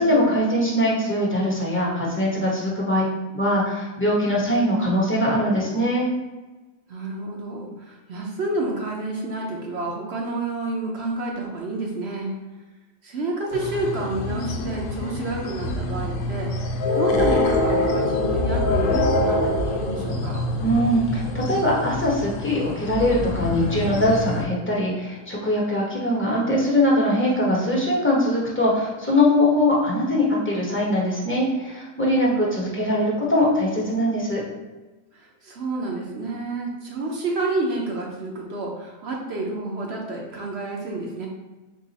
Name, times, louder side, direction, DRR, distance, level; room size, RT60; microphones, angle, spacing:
voice 1, 0.0-3.0 3.3-6.1 20.6-34.4, left 1 dB, 10° left, -5 dB, 0.6 m, -22 dB
voice 2, 6.9-12.3 13.0-16.5 17.0-20.4 32.2-32.6 35.1-41.3, right 2 dB, 55° right, -1 dB, 0.7 m, -29 dB
sound 1, 13.5-24.4, left 2 dB, 70° left, 0.8 m, -25 dB
4.7 x 2.4 x 4.0 m, 1.2 s
omnidirectional pair, 1.7 m